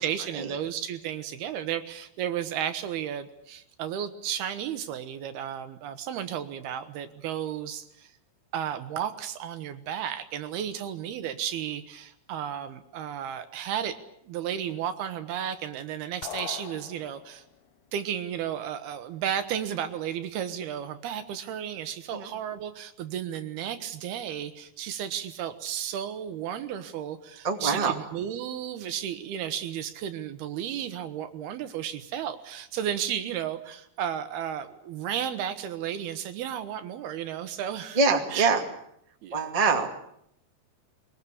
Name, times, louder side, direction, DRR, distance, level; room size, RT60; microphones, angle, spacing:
voice 1, 0.0-8.1 8.5-14.0 14.3-17.4 17.9-38.0 38.3-38.5 39.2-39.4, right 9 dB, 75° right, 10 dB, 2.9 m, -33 dB
sound 1, 16.2-17.5, left 10 dB, 75° left, 3.0 m, -40 dB
voice 2, 27.4-27.9 37.9-38.6 39.3-39.9, right 4 dB, 15° right, 3 dB, 1.3 m, -24 dB
22.0 x 21.5 x 8.5 m, 0.74 s
omnidirectional pair, 4.9 m